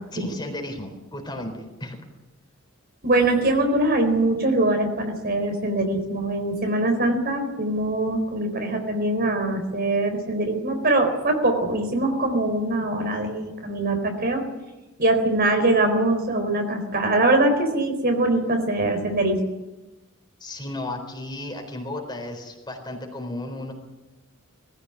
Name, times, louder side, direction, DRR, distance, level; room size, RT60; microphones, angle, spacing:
voice 1, 0.1-2.0 20.4-23.7, left 1 dB, 20° left, 4 dB, 4.2 m, -34 dB
voice 2, 3.0-14.4 15.0-19.4, right 2 dB, 50° right, 5 dB, 4.2 m, -23 dB
21.0 x 15.5 x 9.9 m, 1.1 s
head